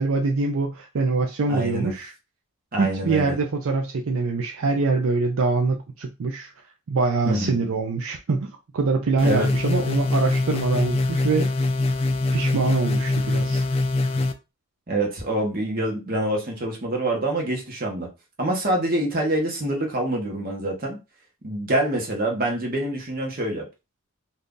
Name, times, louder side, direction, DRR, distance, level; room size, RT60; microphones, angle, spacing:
voice 1, 0.0-2.1 2.8-6.5 6.9-11.5 12.3-13.7, right 3 dB, 70° right, 0.4 m, -24 dB
voice 2, 1.5-1.9 2.7-3.3 7.2-7.5 9.2-9.5 14.9-18.1 18.4-21.0 21.4-23.7, right 1 dB, 40° right, 1.1 m, -26 dB
sound 1, 9.2-14.3, left 2 dB, 25° left, 0.3 m, -23 dB
2.7 x 2.6 x 3.6 m
head